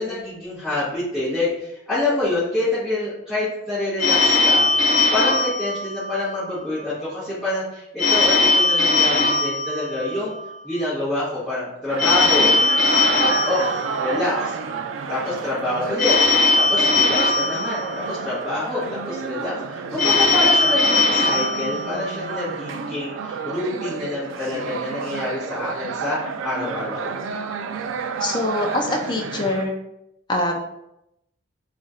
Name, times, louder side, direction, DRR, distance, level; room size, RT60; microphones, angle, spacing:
voice 1, 0.0-4.7 5.1-10.3 10.6-12.5 13.2-13.6 14.0-14.6 15.1-16.2 16.5-27.2, left 2 dB, ahead, -14 dB, 1.2 m, -27 dB
Telephone, 4.0-6.5 8.0-10.5 12.0-14.5 16.0-18.5 20.0-22.5, left 3 dB, 45° left, 1.0 m, -19 dB
sound 1, 11.9-29.7, right 5 dB, 80° right, 0.3 m, -30 dB
voice 2, 28.2-29.7 30.3-30.6, left 2 dB, 25° left, 1 dB, 0.4 m, -24 dB
3.0 x 2.4 x 4.1 m, 0.83 s
head